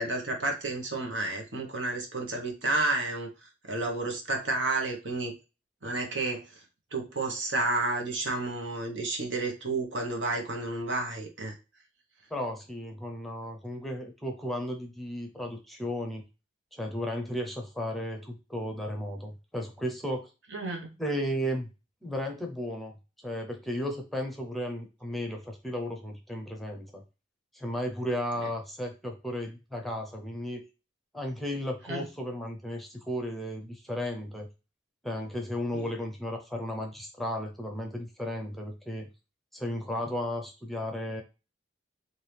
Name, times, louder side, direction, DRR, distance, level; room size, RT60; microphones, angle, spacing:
voice 1, 0.0-3.3 3.7-5.3 5.8-6.4 6.9-11.5 20.5-20.9 31.9-32.0 35.7-35.9, right 2 dB, 80° right, 2 dB, 1.2 m, -31 dB
voice 2, 12.3-16.2 16.7-20.3 21.0-21.7 22.0-22.9 23.2-27.0 27.5-30.6 31.1-34.5 35.0-39.1 39.5-41.2, equal, ahead, 2 dB, 0.7 m, -34 dB
4.6 x 2.7 x 3.4 m, 0.29 s
head